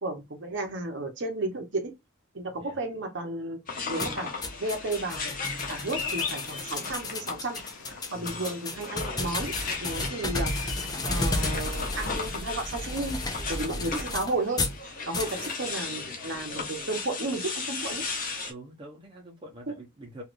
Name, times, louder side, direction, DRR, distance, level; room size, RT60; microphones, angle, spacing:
voice 1, 0.0-1.9 2.3-3.6 3.9-4.3 4.6-13.2 13.5-18.0 19.7-19.8, right 2 dB, 55° right, 0.9 m, -33 dB
Bird vocalization bird call bird song, 3.7-11.9, left 6 dB, 70° left, 0.5 m, -41 dB
sound 1, 3.7-18.5, left 4 dB, 40° left, 0.7 m, -37 dB
sound 2, 4.0-14.8 15.1-15.5, left 2 dB, 20° left, 0.4 m, -33 dB
voice 2, 8.1-8.5 13.7-14.0 15.1-15.3 18.5-20.2, right 1 dB, 20° right, 0.8 m, -46 dB
3.1 x 2.5 x 2.5 m
head